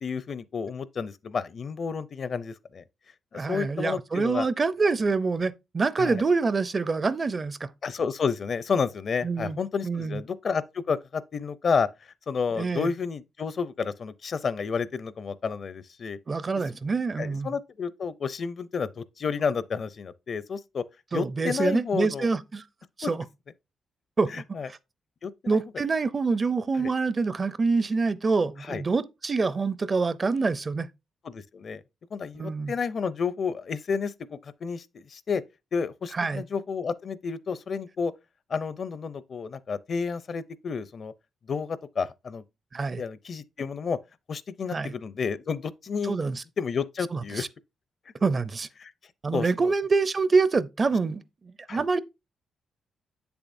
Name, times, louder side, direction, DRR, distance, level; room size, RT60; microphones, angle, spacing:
voice 1, 0.0-2.8 3.3-4.5 6.0-6.2 7.8-11.9 12.3-16.2 17.2-20.8 21.1-22.3 23.0-23.1 24.3-24.7 25.2-25.6 26.8-26.9 28.6-28.8 31.2-31.8 32.1-35.4 35.7-38.1 38.5-41.1 41.5-42.4 43.0-44.0 44.3-46.2 46.6-47.4 48.8-48.9 49.3-49.7 51.7-51.8, left 5 dB, 50° left, 0.5 m, -30 dB
voice 2, 3.3-7.7 9.2-9.6 9.8-10.2 12.5-12.9 16.3-17.5 21.1-22.6 23.0-23.2 24.2-24.8 25.5-30.9 32.3-32.7 36.1-36.4 42.7-43.0 44.7-44.9 46.0-46.4 47.1-47.5 48.2-48.7 49.2-52.0, right 4 dB, 35° right, 0.5 m, -26 dB
7.9 x 6.9 x 2.6 m
cardioid pair, 85°, 0 cm